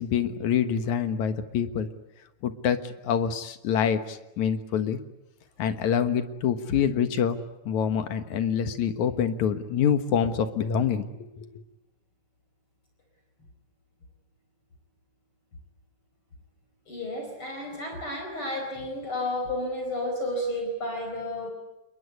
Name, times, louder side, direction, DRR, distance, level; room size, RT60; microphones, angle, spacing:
voice 1, 0.0-1.9 2.4-5.0 5.6-7.4 7.7-11.5, left 8 dB, 75° left, 9 dB, 2.8 m, -26 dB
voice 2, 16.9-21.5, left 1 dB, 45° left, 3 dB, 5.4 m, -32 dB
28.5 x 21.5 x 9.6 m, 0.94 s
omnidirectional pair, 3.5 m